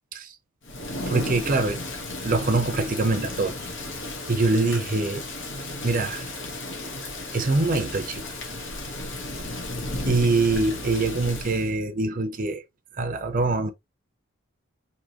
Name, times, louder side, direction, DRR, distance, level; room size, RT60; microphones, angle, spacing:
Thunder / Rain, 0.6-11.7, left 2 dB, 60° left, 1.2 m, -34 dB
voice 1, 1.1-1.8 2.2-3.6 4.3-5.2 5.8-6.3 7.3-8.3 10.1-12.6 12.9-13.7, right 3 dB, 40° right, 0.7 m, -24 dB
5.0 x 2.8 x 2.9 m
head